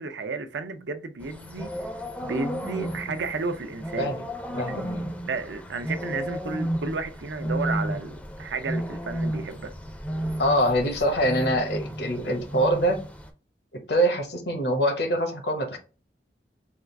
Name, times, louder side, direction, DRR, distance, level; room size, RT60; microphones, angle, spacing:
voice 1, 0.0-1.7 2.2-4.1 4.6-9.7, right 4 dB, 90° right, 0.6 m, -32 dB
sound 1, 1.2-13.3, equal, 10° left, 0.4 m, -33 dB
voice 2, 4.5-4.9 10.4-13.1 13.7-15.8, equal, 70° left, 1.0 m, -24 dB
3.6 x 2.4 x 4.5 m
head